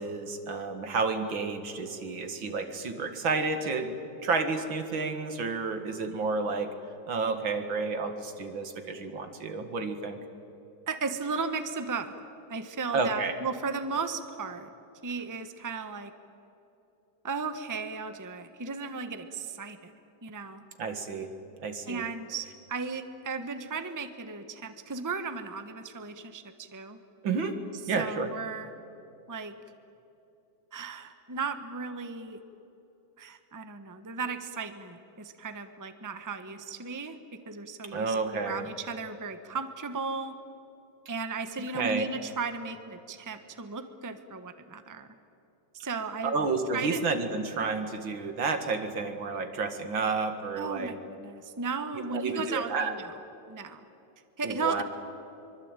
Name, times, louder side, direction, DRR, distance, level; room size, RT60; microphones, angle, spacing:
voice 1, 0.0-4.0 4.2-6.7 7.1-10.2 12.9-13.3 20.8-21.3 21.6-22.0 27.2-27.6 27.9-28.3 37.9-38.7 41.7-42.0 46.2-50.9 52.1-53.0 54.4-54.8, right 4 dB, 75° right, 7 dB, 2.7 m, -30 dB
voice 2, 10.9-12.1 12.5-14.7 15.0-16.1 17.2-19.9 20.2-20.6 21.9-27.0 27.9-28.7 29.3-29.5 30.7-32.4 33.2-40.3 41.1-45.1 45.7-46.3 46.7-47.0 50.6-53.0 53.5-53.8 54.4-54.8, right 4 dB, 10° right, 9 dB, 1.0 m, -35 dB
24.5 x 24.0 x 9.0 m, 2.7 s
omnidirectional pair, 2.2 m